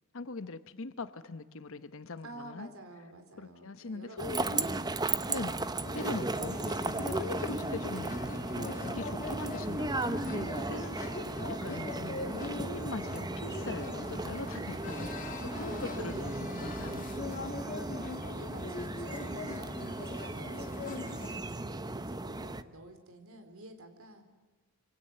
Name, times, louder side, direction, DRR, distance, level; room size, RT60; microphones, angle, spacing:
voice 1, 0.1-2.7 3.4-4.7 5.3-5.7 5.9-8.1 8.5-11.0 11.6-17.0, left 3 dB, 65° left, 11 dB, 1.0 m, -41 dB
voice 2, 2.2-5.1 10.6-11.0 15.5-16.6 18.1-24.2, right 1 dB, 70° right, 7 dB, 4.1 m, -50 dB
sound 1, 4.2-22.6, right 2 dB, 20° right, 0.9 m, -36 dB
sound 2, 5.8-21.4, left 3 dB, 40° left, 2.5 m, -42 dB
26.5 x 25.0 x 7.9 m, 1.2 s
head